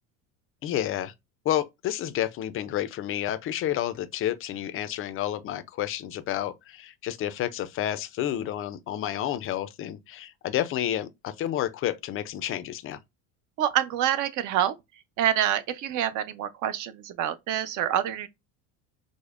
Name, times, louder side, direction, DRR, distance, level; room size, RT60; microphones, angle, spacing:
voice 1, 0.6-1.1 1.5-13.0, left 12 dB, 35° left, 0.4 m, -30 dB
voice 2, 13.6-14.7 15.2-18.3, right 11 dB, 55° right, 0.6 m, -26 dB
4.9 x 2.0 x 2.3 m
supercardioid pair, 110°, 37 cm